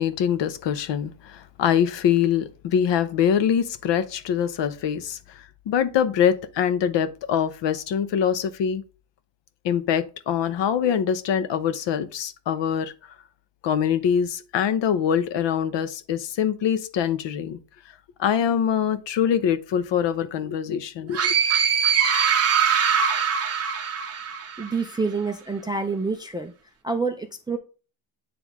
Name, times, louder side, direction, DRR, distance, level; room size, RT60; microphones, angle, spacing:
voice 1, 0.0-5.2 5.7-8.8 9.6-12.9 13.6-17.6 18.2-21.3, left 8 dB, 60° left, 0.8 m, -24 dB
sound 1, 21.1-24.8, right 7 dB, 30° right, 0.9 m, -22 dB
voice 2, 24.6-26.5 26.8-27.6, right 4 dB, 10° right, 0.3 m, -27 dB
9.1 x 3.4 x 3.5 m
cardioid pair, 160°, 48 cm